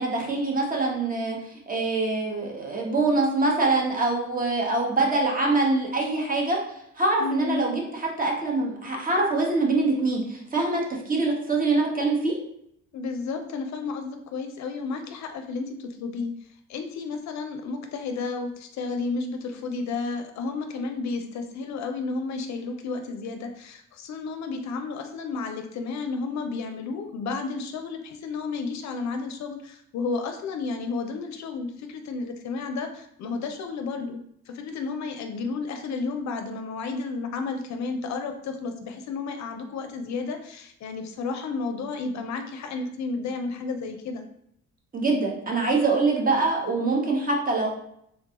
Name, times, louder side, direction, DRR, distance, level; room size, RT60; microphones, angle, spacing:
voice 1, 0.0-1.4 1.7-6.6 7.0-12.4 44.9-47.7, right 3 dB, 30° right, 0 dB, 0.8 m, -24 dB
voice 2, 7.2-7.7 12.9-16.3 16.7-44.2, left 4 dB, 65° left, 6 dB, 0.5 m, -32 dB
3.5 x 2.2 x 2.8 m, 0.73 s
cardioid pair, 90°, 30 cm